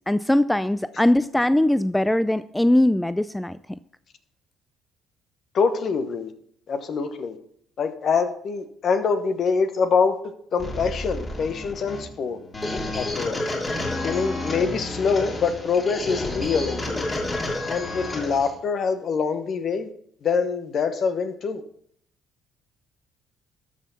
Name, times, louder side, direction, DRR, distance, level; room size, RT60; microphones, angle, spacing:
voice 1, 0.1-3.6, left 1 dB, 10° left, 15 dB, 0.4 m, -21 dB
voice 2, 5.5-6.3 6.7-7.4 7.8-10.2 10.5-12.4 12.9-13.5 14.0-17.1 17.7-19.9 20.2-21.6, left 5 dB, 55° left, 9 dB, 1.1 m, -25 dB
sound 1, 10.6-18.5, left 2 dB, 30° left, 3.2 m, -30 dB
12.5 x 6.2 x 4.1 m, 0.66 s
hypercardioid pair, 55°, 0 cm